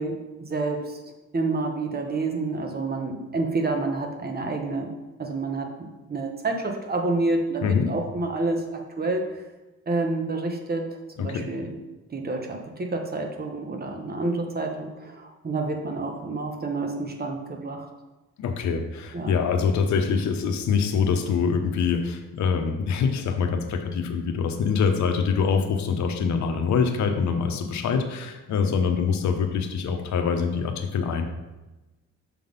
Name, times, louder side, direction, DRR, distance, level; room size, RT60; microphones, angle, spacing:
voice 1, 0.0-4.9 5.2-9.3 9.9-10.9 11.2-11.7 12.1-17.9 19.1-19.3, right 3 dB, 30° right, 3 dB, 1.2 m, -29 dB
voice 2, 7.6-7.9 11.2-11.4 18.4-31.2, left 6 dB, 70° left, 5 dB, 1.0 m, -24 dB
6.8 x 3.8 x 5.3 m, 1.1 s
cardioid pair, 90°, 30 cm